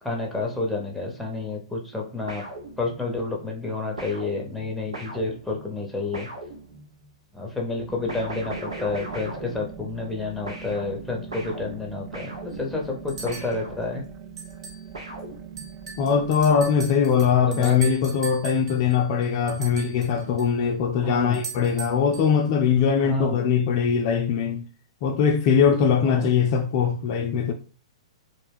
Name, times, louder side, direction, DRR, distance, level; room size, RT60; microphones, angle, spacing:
voice 1, 0.0-2.4 2.8-6.3 7.3-14.1 17.2-17.8 21.0-21.4 23.0-23.4 26.0-26.5, left 3 dB, ahead, 0.8 m, -30 dB
sound 1, 2.3-3.3 4.0-7.1 8.1-10.2 10.5-14.2 14.9-15.9, right 1 dB, 85° right, 1.0 m, -40 dB
sound 2, 7.9-16.6, right 8 dB, 30° right, 0.3 m, -42 dB
sound 3, 12.5-12.6 13.1-13.6 14.4-14.9 15.2-15.3 15.6-20.5 21.3-22.4, right 6 dB, 65° right, 1.2 m, -39 dB
voice 2, 16.0-24.6 25.0-27.5, left 7 dB, 45° left, 0.3 m, -21 dB
2.5 x 2.1 x 3.4 m
hypercardioid pair, 120°, 3 cm